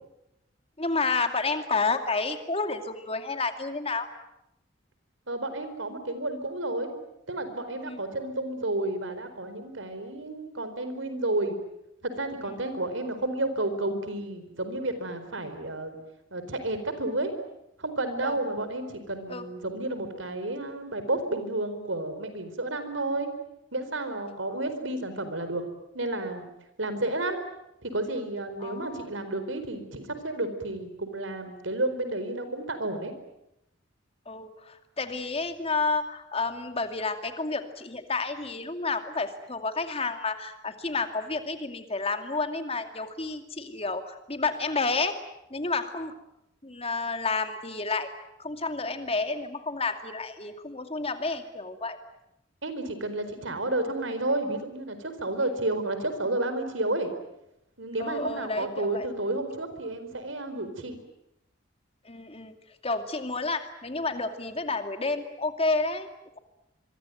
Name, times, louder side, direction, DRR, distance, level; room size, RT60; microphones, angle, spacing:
voice 1, 0.8-4.1 7.9-8.0 12.5-12.6 18.2-18.4 19.3-19.5 28.6-29.0 34.3-45.2 45.5-46.1 46.6-48.1 48.4-52.0 55.4-55.5 58.0-59.1 62.1-62.5 62.8-66.1, left 3 dB, 30° left, 7 dB, 2.5 m, -30 dB
voice 2, 5.3-6.9 7.3-11.6 12.0-16.0 16.3-17.3 17.8-23.3 23.7-25.6 25.9-26.5 26.8-27.4 27.8-33.1 52.6-57.1 57.8-61.0, right 2 dB, 85° right, 9 dB, 4.5 m, -31 dB
26.0 x 23.0 x 9.2 m, 0.85 s
head